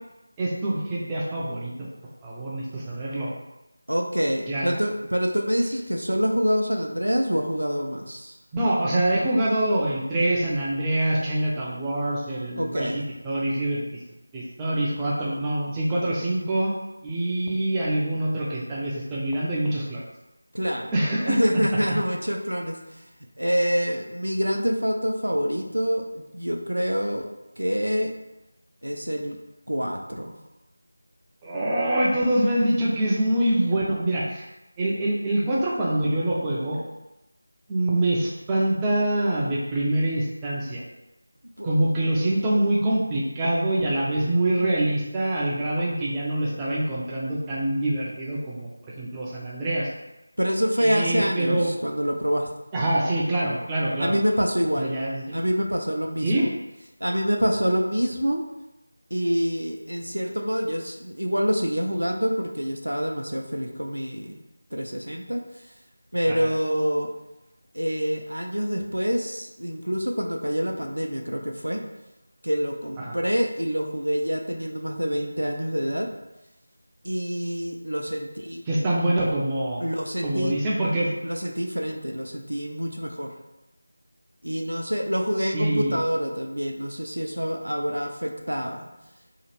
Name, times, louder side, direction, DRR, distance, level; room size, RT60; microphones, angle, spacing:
voice 1, 0.4-1.9 2.2-3.3 4.5-4.7 8.5-14.0 14.3-16.7 17.0-20.0 20.9-21.4 21.9-22.0 31.4-34.5 34.8-36.8 37.7-40.8 41.6-48.7 49.0-49.9 50.8-51.7 52.7-54.1 54.8-55.4 56.2-56.5 66.3-66.5 73.0-73.1 78.7-79.8 80.2-81.1 85.5-86.0, right 1 dB, 10° right, -6 dB, 0.4 m, -25 dB
voice 2, 3.9-8.3 12.6-13.0 20.5-20.9 21.3-22.8 23.4-27.3 27.6-28.1 28.8-29.4 29.7-30.3 41.6-41.7 50.4-52.5 54.0-55.0 55.3-56.5 57.0-58.4 59.1-64.4 64.7-65.4 66.1-67.1 67.7-71.8 72.4-76.1 77.0-78.6 79.8-80.6 81.2-83.3 84.4-88.8, equal, 75° right, 3 dB, 0.4 m, -26 dB
2.8 x 2.4 x 2.9 m, 0.98 s
figure-of-eight pair, 165°, 0 cm